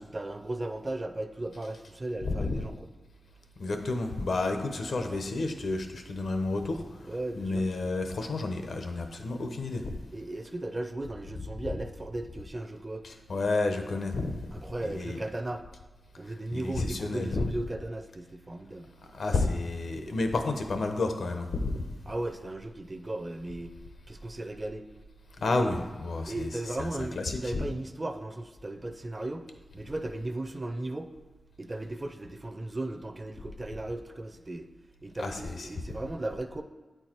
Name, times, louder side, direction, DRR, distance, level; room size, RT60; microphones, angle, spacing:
voice 1, 0.0-2.9 4.9-5.2 7.1-7.6 10.1-13.1 14.5-15.6 16.2-18.9 22.1-23.7 24.1-24.9 25.4-25.9 26.3-29.5 29.7-31.1 31.6-34.7 35.0-36.6, right 2 dB, 25° right, 8 dB, 0.5 m, -36 dB
voice 2, 2.2-2.5 3.6-6.8 7.4-10.0 13.0-14.3 14.8-15.2 16.5-17.4 19.1-21.8 25.4-26.5 26.8-27.7 35.2-35.7, left 3 dB, 75° left, 6 dB, 0.8 m, -30 dB
8.6 x 4.6 x 4.4 m, 1.3 s
wide cardioid pair, 120°, 0 cm